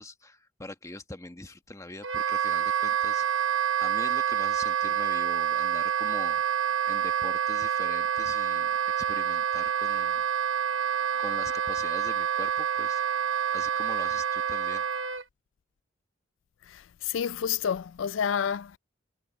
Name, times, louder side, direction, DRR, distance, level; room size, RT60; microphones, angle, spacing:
voice 1, 0.0-3.2 3.8-6.4 6.9-10.2 11.2-13.0 13.5-14.8, left 2 dB, 15° left, 1.4 m, -43 dB
Wind instrument woodwind instrument, 2.0-15.2, right 9 dB, 80° right, 1.1 m, -27 dB
voice 2, 16.7-18.8, left 8 dB, 75° left, 0.4 m, -29 dB
head